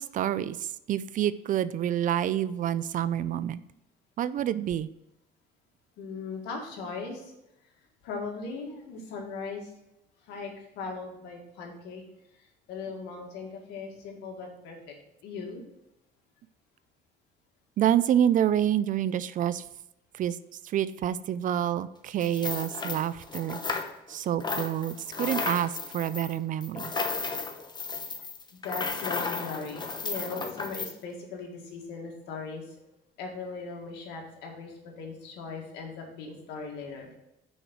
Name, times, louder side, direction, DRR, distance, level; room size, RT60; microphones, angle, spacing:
voice 1, 0.0-3.6 4.2-4.9 17.8-19.6 20.2-20.4 20.7-23.6 24.1-26.9, right 10 dB, 50° right, 16 dB, 0.4 m, -27 dB
voice 2, 6.0-7.3 8.0-9.7 10.3-12.0 12.7-14.9 15.2-15.6 28.5-32.6 33.2-37.1, left 4 dB, 90° left, 1 dB, 2.0 m, -39 dB
sound 1, 22.2-24.1 24.4-30.9, left 4 dB, 25° left, 0.9 m, -34 dB
6.3 x 5.0 x 5.9 m, 0.87 s
cardioid pair, 110°, 17 cm